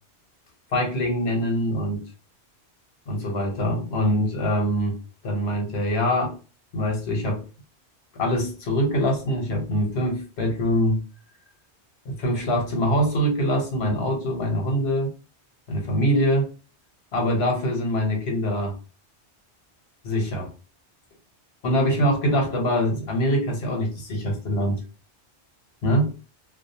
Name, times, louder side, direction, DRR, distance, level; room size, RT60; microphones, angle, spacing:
voice 1, 0.7-2.0 3.1-5.0 5.2-6.4 6.7-7.4 8.1-11.0 12.0-15.1 15.7-16.5 17.1-18.8 20.0-20.5 21.6-24.8 25.8-26.1, equal, 70° left, 1 dB, 1.1 m, -24 dB
2.4 x 2.4 x 2.7 m, 0.34 s
omnidirectional pair, 1.2 m